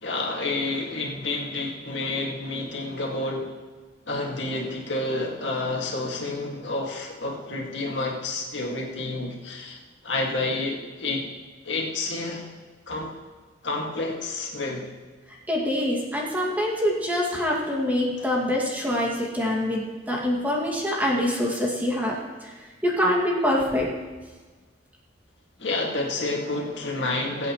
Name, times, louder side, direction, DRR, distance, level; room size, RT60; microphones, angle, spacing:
voice 1, 0.0-3.5 4.1-11.3 11.6-12.5 12.9-13.2 13.6-14.9 18.8-18.9 25.6-27.5, left 2 dB, 70° left, -1 dB, 2.1 m, -29 dB
voice 2, 15.5-23.9, left 1 dB, 10° right, -3 dB, 2.2 m, -25 dB
22.0 x 8.2 x 3.1 m, 1.4 s
head